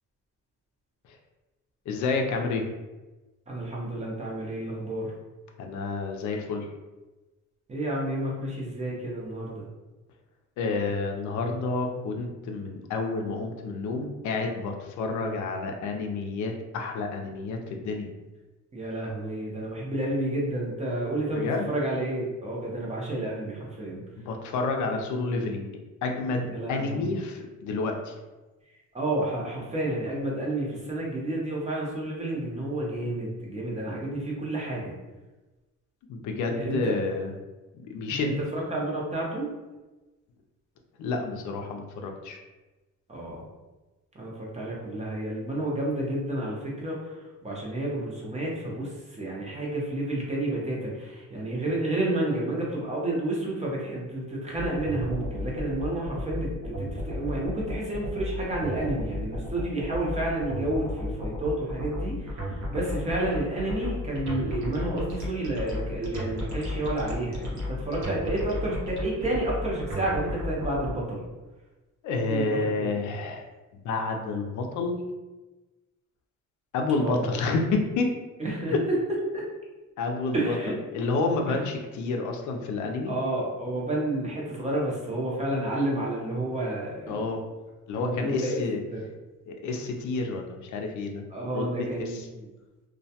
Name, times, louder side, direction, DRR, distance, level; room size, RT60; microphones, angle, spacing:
voice 1, 1.9-2.7 5.6-6.7 10.6-18.1 21.3-21.7 24.2-25.7 26.0-28.1 36.1-37.3 37.7-38.3 41.0-42.4 72.0-73.5 73.8-75.0 76.7-78.1 78.7-78.8 80.0-80.6 80.9-83.2 87.1-87.4 87.9-88.8 89.5-91.2 91.5-92.3, left 3 dB, 75° left, 3 dB, 0.5 m, -29 dB
voice 2, 3.5-5.1 7.7-9.6 18.7-24.0 26.5-27.2 28.9-34.9 36.5-37.0 38.2-39.5 43.1-43.4 44.1-47.2 47.4-71.2 72.3-73.1 77.0-77.3 78.4-78.7 79.3-79.4 80.3-80.8 81.5-81.6 83.1-87.2 88.0-88.6 88.9-89.0 91.3-92.5, right 1 dB, 20° right, -4 dB, 0.6 m, -30 dB
sound 1, 54.5-70.9, left 1 dB, 65° right, 0.9 m, -33 dB
2.2 x 2.1 x 2.7 m, 1.1 s
cardioid pair, 130°, 30 cm